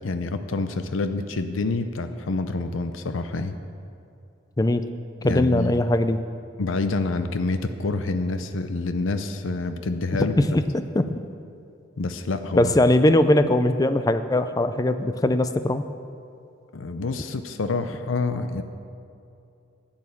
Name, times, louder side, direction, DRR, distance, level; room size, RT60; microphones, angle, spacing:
voice 1, 0.0-3.6 5.2-5.7 6.6-10.3 12.0-12.7 16.7-18.6, left 3 dB, 90° left, 9 dB, 0.6 m, -27 dB
voice 2, 5.2-6.2 10.4-11.1 12.5-15.8, left 1 dB, 20° left, 11 dB, 0.4 m, -20 dB
10.5 x 9.0 x 7.1 m, 2.6 s
head